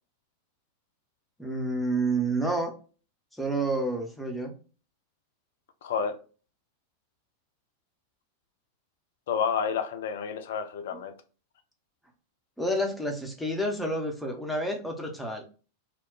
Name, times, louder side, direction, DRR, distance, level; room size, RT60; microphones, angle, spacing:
voice 1, 1.4-2.7 3.4-4.5 12.6-15.5, right 1 dB, 5° left, 0.7 m, -29 dB
voice 2, 5.8-6.2 9.3-11.2, left 6 dB, 60° left, 0.4 m, -30 dB
2.3 x 2.1 x 3.6 m
figure-of-eight pair, 90°, 0 cm